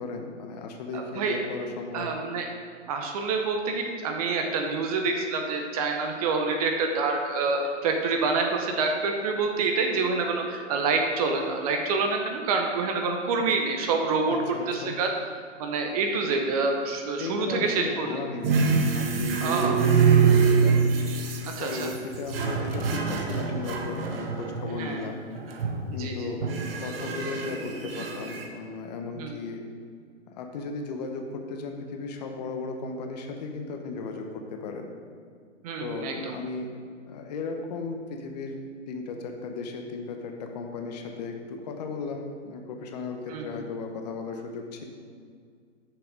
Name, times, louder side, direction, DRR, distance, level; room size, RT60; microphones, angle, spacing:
voice 1, 0.0-2.1 14.3-14.9 17.2-21.1 21.6-25.2 25.9-29.6 30.4-34.9 35.8-36.7 37.1-38.6 38.9-44.8, left 4 dB, 35° left, 4 dB, 0.8 m, -35 dB
voice 2, 0.9-1.4 1.9-2.5 2.9-14.4 14.7-15.1 15.6-18.2 19.4-19.8 21.5-21.9 24.7-25.0 25.9-26.3 29.2-29.4 35.6-36.3 43.3-43.6, right 4 dB, 30° right, 3 dB, 0.8 m, -27 dB
sound 1, 18.4-24.8 25.4-26.0 26.4-28.4, right 5 dB, 50° right, 1.1 m, -25 dB
6.7 x 5.8 x 5.1 m, 2.1 s
hypercardioid pair, 135°, 37 cm